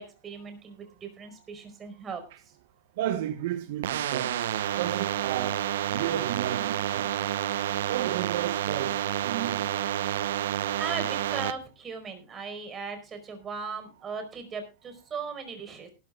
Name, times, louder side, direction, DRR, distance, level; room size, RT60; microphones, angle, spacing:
voice 1, 0.0-2.2 10.6-15.9, right 5 dB, 25° right, 4.8 m, -38 dB
voice 2, 3.0-4.3 4.8-5.6 5.9-7.2 7.9-9.7, right 12 dB, 70° right, 1.2 m, -33 dB
sound 1, 3.8-11.5, right 12 dB, 85° right, 0.8 m, -29 dB
19.5 x 13.0 x 2.4 m
supercardioid pair, 130°, 0 cm